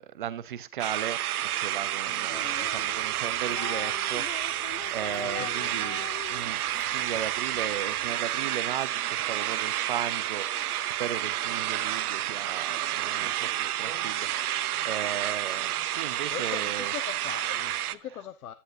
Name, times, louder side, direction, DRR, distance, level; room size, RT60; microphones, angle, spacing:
voice 1, 0.0-6.6 6.9-16.9, right 10 dB, 35° right, 0.7 m, -36 dB
sound 1, 0.8-17.9, right 12 dB, 80° right, 0.8 m, -30 dB
voice 2, 2.1-2.9 5.2-5.8 16.3-18.5, left 10 dB, 75° left, 0.9 m, -41 dB
sound 2, 2.3-8.1, left 9 dB, 55° left, 1.6 m, -43 dB
10.5 x 10.0 x 2.6 m
hypercardioid pair, 180°, 44 cm